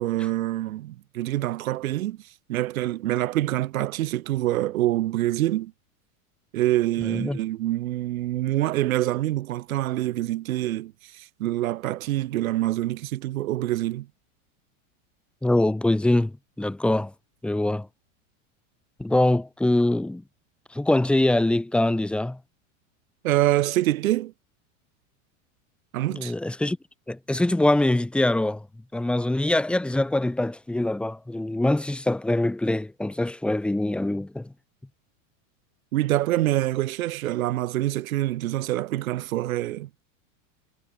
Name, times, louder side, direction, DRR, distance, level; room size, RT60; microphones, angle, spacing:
voice 1, 0.0-2.2 2.5-5.7 6.5-14.1 23.2-24.3 25.9-26.3 35.9-39.9, right 15 dB, 90° right, 4.5 m, -26 dB
voice 2, 7.0-7.4 15.4-17.1 17.4-17.9 19.0-20.2 20.7-22.4 26.1-26.8 27.1-28.7 28.9-34.5, left 1 dB, 5° left, 2.1 m, -23 dB
supercardioid pair, 175°, 40 cm